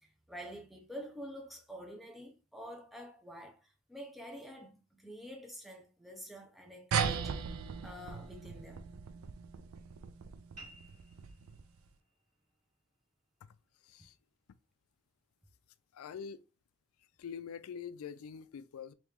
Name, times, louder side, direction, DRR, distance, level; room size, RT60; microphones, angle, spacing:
voice 1, 0.0-7.4 7.8-8.8 14.0-14.1, equal, ahead, 0.5 m, -48 dB
sound 1, 6.9-11.8, right 6 dB, 80° right, 0.4 m, -38 dB
sound 2, 10.6-15.6, right 1 dB, 35° right, 1.7 m, -60 dB
voice 2, 13.8-14.2 15.9-16.4 17.0-18.9, left 7 dB, 85° left, 0.3 m, -45 dB
3.0 x 2.8 x 3.5 m
head